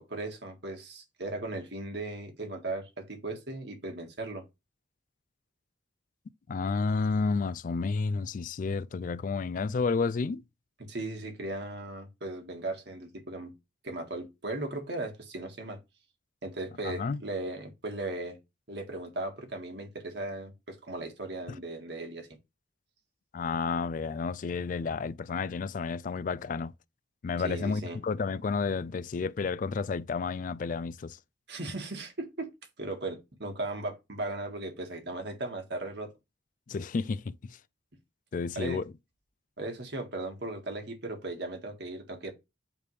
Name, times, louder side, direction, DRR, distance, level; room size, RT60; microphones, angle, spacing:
voice 1, 0.0-4.4 10.8-13.5 13.8-15.8 16.4-18.4 18.7-22.3 27.4-28.0 31.5-32.5 32.8-36.1 38.5-38.8 39.6-42.3, right 2 dB, 65° right, 1.7 m, -37 dB
voice 2, 6.5-10.4 16.8-17.2 23.3-26.7 27.2-31.2 36.7-37.3 38.3-38.8, left 4 dB, 45° left, 0.3 m, -31 dB
8.9 x 3.5 x 3.2 m
head